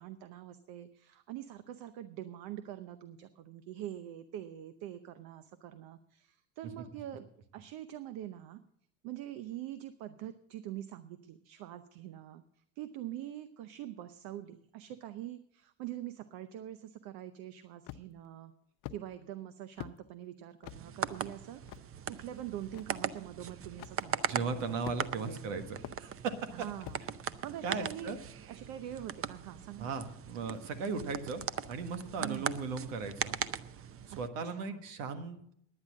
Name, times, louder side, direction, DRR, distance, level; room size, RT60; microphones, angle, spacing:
voice 1, 0.0-7.3 7.5-8.6 9.0-18.5 18.9-21.6 22.1-24.6 25.2-25.7 26.5-27.0 27.4-28.1 28.5-29.9 32.2-32.5 34.1-34.8, right 12 dB, 70° right, 12 dB, 0.8 m, -44 dB
sound 1, 17.8-18.3 18.8-19.0 19.8-20.0 20.6-20.8 21.7-21.9 22.7-22.8 23.8-24.0 24.8-25.3 25.8-26.0 26.8-27.1, left 13 dB, 60° left, 0.6 m, -44 dB
sound 2, 20.7-34.3, right 8 dB, 35° right, 0.7 m, -40 dB
voice 2, 24.3-26.4 27.6-28.2 29.8-31.4 31.7-33.4 34.2-35.5, right 4 dB, 85° right, 8 dB, 1.5 m, -37 dB
10.0 x 9.6 x 7.4 m, 0.72 s
supercardioid pair, 80°, 38 cm